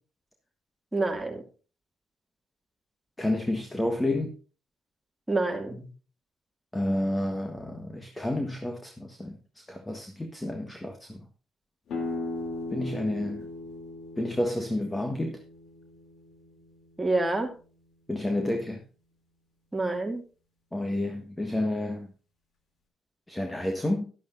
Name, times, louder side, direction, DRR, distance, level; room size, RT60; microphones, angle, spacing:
voice 1, 0.9-1.4 5.3-5.8 17.0-17.5 19.7-20.2, right 2 dB, 10° right, 2.4 m, -27 dB
voice 2, 3.2-4.3 6.7-9.4 9.7-11.2 12.7-13.4 14.2-15.4 18.1-18.8 20.7-22.1 23.3-24.0, left 1 dB, 15° left, 1.4 m, -30 dB
sound 1, 11.9-17.5, left 2 dB, 70° left, 3.0 m, -38 dB
12.5 x 11.5 x 2.6 m
cardioid pair, 90°, 0 cm